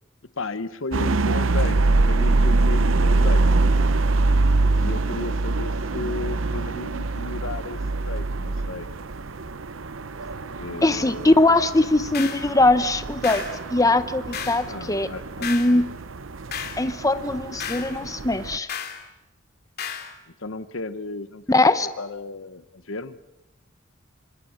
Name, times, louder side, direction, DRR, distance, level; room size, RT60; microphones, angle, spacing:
voice 1, 0.4-1.8 2.0-3.4 4.8-8.9 10.6-11.3 14.6-15.9 20.4-23.2, left 3 dB, 75° left, 13 dB, 1.1 m, -34 dB
sound 1, 0.9-18.6, right 3 dB, 70° right, 0.8 m, -24 dB
voice 2, 10.8-13.4 13.7-15.1 15.4-15.8 16.8-18.7 21.5-21.9, left 2 dB, 15° left, 11 dB, 0.8 m, -20 dB
sound 2, 12.1-12.5 13.2-13.6 14.3-14.7 15.4-15.7 16.5-16.8 17.6-17.9 18.7-19.0 19.8-20.1, left 8 dB, 50° left, 2.8 m, -32 dB
26.5 x 25.5 x 6.5 m, 1.0 s
head